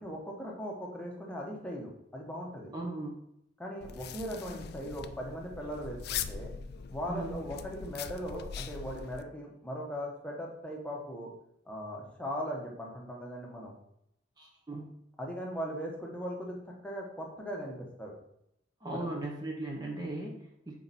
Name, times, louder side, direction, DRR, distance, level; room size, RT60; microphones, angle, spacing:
voice 1, 0.0-2.7 3.6-6.5 6.9-11.3 11.7-13.7 15.2-18.1 18.9-19.2, equal, 5° left, -1 dB, 1.1 m, -39 dB
voice 2, 2.7-3.2 7.1-7.4 14.4-14.9 18.8-20.8, right 2 dB, 20° right, -2 dB, 0.8 m, -38 dB
sound 1, 3.8-9.2, left 7 dB, 55° left, 0.4 m, -41 dB
5.8 x 4.5 x 4.1 m, 0.76 s
head